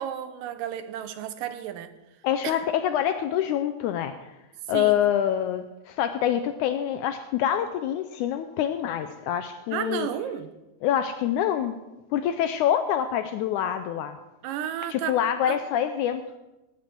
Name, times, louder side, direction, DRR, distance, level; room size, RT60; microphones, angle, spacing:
voice 1, 0.0-1.9 2.4-2.6 4.7-5.0 9.7-10.5 14.4-15.2 15.5-15.6, right 10 dB, 80° right, 11 dB, 2.4 m, -32 dB
voice 2, 2.2-4.1 4.7-10.1 10.8-11.8 12.1-14.2 14.9-16.2, left 10 dB, 80° left, 8 dB, 1.8 m, -26 dB
17.5 x 8.9 x 4.5 m, 1.0 s
omnidirectional pair, 3.9 m